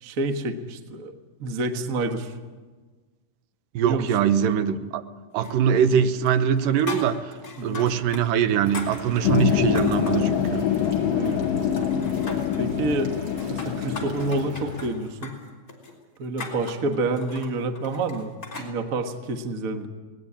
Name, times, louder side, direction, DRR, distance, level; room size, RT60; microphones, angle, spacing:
voice 1, 0.0-1.1 1.4-2.3 3.8-4.1 7.6-7.8 11.1-11.6 12.6-13.2 13.5-15.4 16.2-18.3 18.6-19.9, right 2 dB, 55° right, 5 dB, 0.9 m, -28 dB
voice 2, 3.8-5.0 5.3-7.3 7.6-10.7, right 8 dB, 85° right, 11 dB, 2.6 m, -22 dB
sound 1, 5.4-6.0 6.3-8.2 8.5-10.3 10.7-11.5 11.8-12.6 13.2-18.7, left 3 dB, 25° left, 3.9 m, -39 dB
sound 2, 8.6-14.9, right 1 dB, 30° right, 4.0 m, -40 dB
sound 3, 9.2-14.5, left 9 dB, 90° left, 2.6 m, -25 dB
20.5 x 19.0 x 8.6 m, 1.4 s
omnidirectional pair, 3.9 m